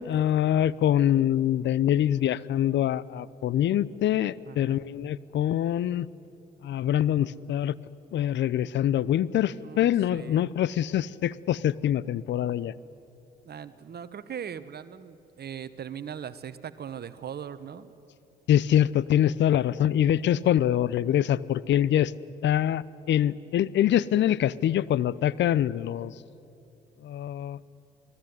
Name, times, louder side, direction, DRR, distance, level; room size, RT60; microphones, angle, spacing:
voice 1, 0.0-6.1 6.6-7.7 8.1-12.7 18.5-22.1 22.4-26.1 27.0-27.6, left 11 dB, 60° left, 20 dB, 0.8 m, -24 dB
voice 2, 4.5-4.8 9.6-10.5 13.4-17.9, right 8 dB, 50° right, 13 dB, 1.2 m, -40 dB
28.0 x 19.0 x 9.6 m, 2.8 s
hypercardioid pair, 50°, 21 cm